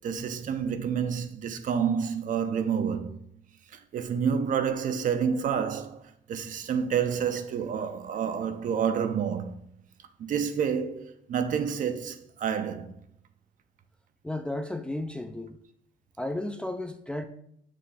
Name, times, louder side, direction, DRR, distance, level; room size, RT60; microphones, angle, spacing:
voice 1, 0.0-3.2 3.7-6.0 6.3-9.5 10.2-12.9, right 7 dB, 50° right, 0.7 m, -29 dB
voice 2, 14.2-15.6 16.2-17.2, left 1 dB, 5° left, 0.4 m, -33 dB
6.4 x 3.1 x 5.5 m
cardioid pair, 110°, 17 cm